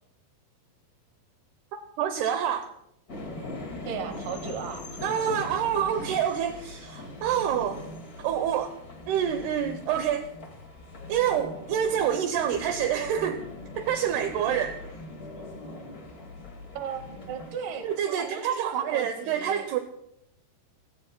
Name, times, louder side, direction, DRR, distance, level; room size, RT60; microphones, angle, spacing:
voice 1, 2.0-2.7 5.0-7.8 8.2-8.8 9.1-10.3 11.1-13.4 13.8-14.8 17.8-19.8, right 9 dB, 75° right, 7 dB, 2.7 m, -27 dB
sound 1, 3.1-18.0, left 2 dB, 40° left, 1.3 m, -44 dB
sound 2, 3.2-17.5, left 1 dB, 70° left, 7.4 m, -44 dB
voice 2, 3.9-5.4 12.0-12.1 16.7-17.9 18.2-19.7, right 6 dB, 60° right, 6 dB, 3.0 m, -37 dB
28.0 x 17.0 x 2.2 m, 0.77 s
omnidirectional pair, 4.9 m